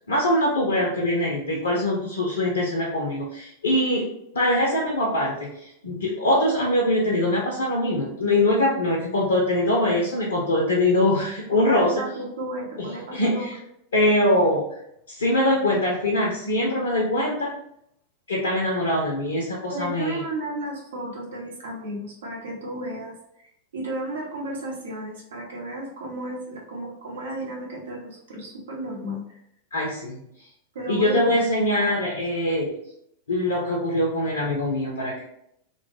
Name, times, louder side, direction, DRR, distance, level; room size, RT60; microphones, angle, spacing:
voice 1, 0.1-4.1 4.3-11.9 12.8-13.6 13.9-14.6 15.1-17.5 18.3-20.2 29.7-30.2 30.9-32.7 33.3-35.3, left 1 dB, 70° left, -3 dB, 0.5 m, -23 dB
voice 2, 11.5-13.6 19.7-23.5 23.7-29.2 30.7-31.4 31.8-32.0, right 1 dB, 65° right, -2 dB, 0.8 m, -33 dB
2.2 x 2.0 x 3.1 m, 0.75 s
figure-of-eight pair, 90°, 0 cm